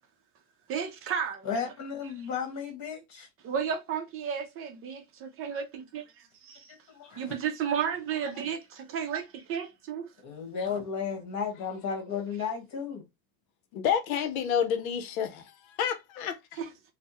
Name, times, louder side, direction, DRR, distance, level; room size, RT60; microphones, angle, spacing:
voice 1, 0.7-1.5 3.4-6.7 7.2-10.1 16.6-16.7, right 7 dB, 35° right, 0.5 m, -33 dB
voice 2, 1.4-3.3 6.7-7.3 10.2-13.0, left 6 dB, 40° left, 1.5 m, -34 dB
voice 3, 13.7-15.4 15.8-16.4, left 8 dB, 90° left, 0.7 m, -28 dB
3.3 x 2.1 x 2.9 m
supercardioid pair, 130°, 41 cm